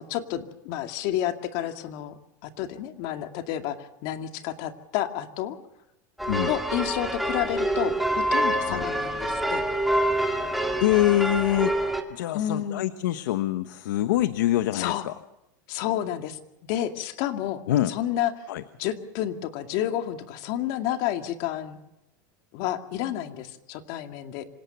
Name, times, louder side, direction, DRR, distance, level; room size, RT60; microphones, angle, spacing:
voice 1, 0.0-2.1 2.4-5.6 6.5-9.7 12.3-12.9 14.7-15.1 15.7-16.4 16.7-18.3 18.8-21.8 22.5-24.4, left 12 dB, 50° left, 6 dB, 2.3 m, -30 dB
sound 1, 6.2-12.0, right 1 dB, ahead, 2.1 m, -26 dB
voice 2, 10.8-11.7 12.1-15.1 17.7-17.9 18.5-18.6, left 14 dB, 90° left, 11 dB, 1.2 m, -24 dB
26.0 x 18.0 x 6.9 m, 0.88 s
supercardioid pair, 155°, 10 cm